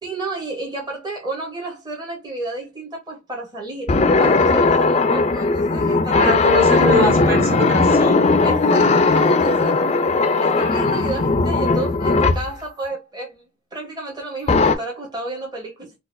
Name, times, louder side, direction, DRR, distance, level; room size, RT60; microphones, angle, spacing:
voice 1, 0.0-6.9 8.4-9.8 10.4-15.9, right 2 dB, 20° right, 1.1 m, -31 dB
sound 1, 3.9-12.5 14.5-14.7, left 3 dB, 35° left, 0.4 m, -17 dB
voice 2, 6.2-8.2, equal, 50° right, 1.4 m, -22 dB
3.9 x 2.4 x 2.5 m
head